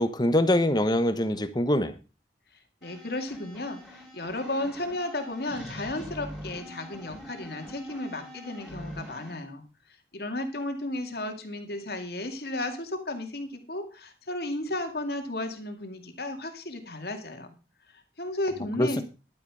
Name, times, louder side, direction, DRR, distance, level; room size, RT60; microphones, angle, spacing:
voice 1, 0.0-1.9 18.8-18.9, left 1 dB, 25° left, 10 dB, 1.2 m, -23 dB
voice 2, 2.8-17.5 17.9-19.0, left 1 dB, 60° left, 5 dB, 2.3 m, -34 dB
sound 1, 2.8-9.3, equal, ahead, 5.4 m, -44 dB
11.5 x 9.5 x 4.9 m, 0.32 s
head